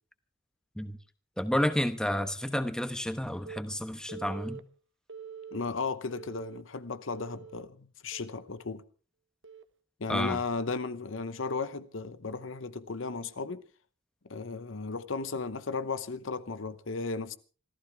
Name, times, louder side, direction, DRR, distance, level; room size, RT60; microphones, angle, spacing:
voice 1, 1.4-4.6 10.1-10.4, equal, 5° left, 1.0 m, -30 dB
Telephone, 3.4-3.6 4.1-4.6 5.1-5.6 6.1-6.6 7.1-7.6 8.1-8.4 9.4-9.6, right 7 dB, 65° right, 1.1 m, -45 dB
voice 2, 5.5-8.8 10.0-13.6 14.3-17.4, left 4 dB, 75° left, 0.9 m, -35 dB
26.0 x 15.0 x 3.5 m
head